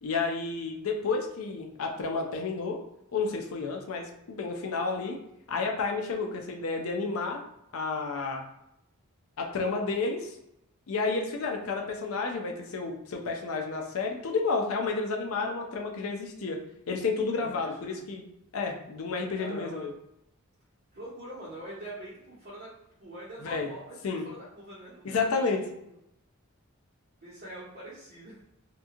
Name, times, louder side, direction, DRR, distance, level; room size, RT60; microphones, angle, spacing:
voice 1, 0.0-2.8 3.1-5.2 5.5-7.4 7.7-8.4 9.4-10.3 10.9-16.6 16.9-18.2 18.5-19.9 23.4-23.7 24.0-24.2 25.0-25.6, left 4 dB, 70° left, 2 dB, 0.5 m, -31 dB
voice 2, 17.3-18.0 19.4-19.9 20.9-22.7 23.0-25.6 27.2-28.4, right 1 dB, 50° right, -12 dB, 1.2 m, -44 dB
2.9 x 2.6 x 2.4 m, 0.82 s
head